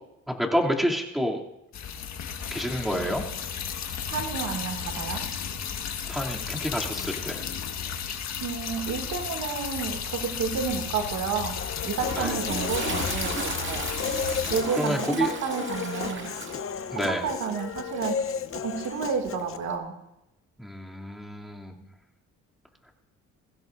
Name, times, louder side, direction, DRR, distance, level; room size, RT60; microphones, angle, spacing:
voice 1, 0.3-1.4 2.5-3.2 6.1-7.4 12.2-12.3 14.8-15.3 16.9-17.2 20.6-21.7, equal, ahead, -2 dB, 2.8 m, -28 dB
sound 1, 1.7-14.6, left 7 dB, 65° left, 1.6 m, -34 dB
voice 2, 4.1-5.2 8.4-11.6 11.8-13.9 14.5-16.3 16.9-18.2 18.6-19.9, right 6 dB, 70° right, 3 dB, 2.4 m, -31 dB
Human voice, 11.6-19.6, left 7 dB, 45° left, 0.8 m, -34 dB
Toilet flush, 11.7-19.8, right 3 dB, 40° right, 2.2 m, -37 dB
23.0 x 15.5 x 2.6 m, 0.87 s
cardioid pair, 90°, 30 cm